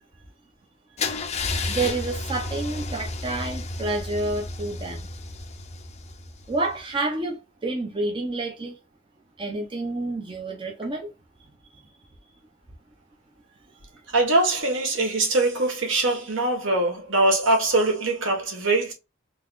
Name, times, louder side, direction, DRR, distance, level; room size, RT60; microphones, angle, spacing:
Car / Engine starting / Idling, 1.0-6.8, left 3 dB, 35° left, 0.5 m, -32 dB
voice 1, 1.7-5.0 6.5-8.8 9.4-11.1, right 2 dB, 25° right, 0.6 m, -29 dB
voice 2, 14.1-18.9, right 2 dB, 70° right, 1.5 m, -22 dB
3.9 x 2.9 x 2.5 m
head